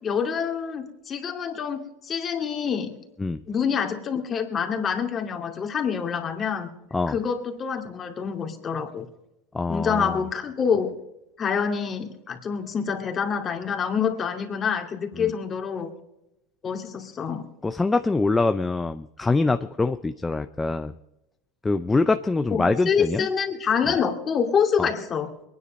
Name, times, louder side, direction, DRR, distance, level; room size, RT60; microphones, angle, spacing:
voice 1, 0.0-3.0 3.5-6.7 7.1-9.1 9.7-10.9 11.4-15.9 16.6-17.5 22.5-25.3, left 6 dB, 30° left, 4 dB, 2.4 m, -26 dB
voice 2, 9.5-10.2 15.2-15.3 17.6-20.9 21.6-23.3 24.8-24.9, left 3 dB, 15° left, 9 dB, 0.5 m, -24 dB
22.0 x 9.8 x 5.3 m, 0.89 s
supercardioid pair, 105°, 0 cm